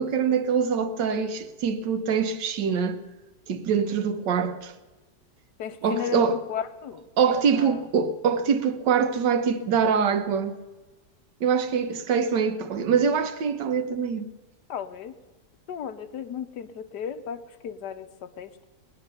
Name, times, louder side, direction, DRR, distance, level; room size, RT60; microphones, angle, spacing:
voice 1, 0.0-3.0 3.5-4.7 5.8-6.4 7.2-10.6 11.4-14.3, right 6 dB, 85° right, 1.6 m, -24 dB
voice 2, 5.6-7.8 13.9-14.0 14.7-15.1 15.7-18.7, left 8 dB, 75° left, 1.5 m, -35 dB
20.5 x 9.9 x 6.8 m
omnidirectional pair, 1.8 m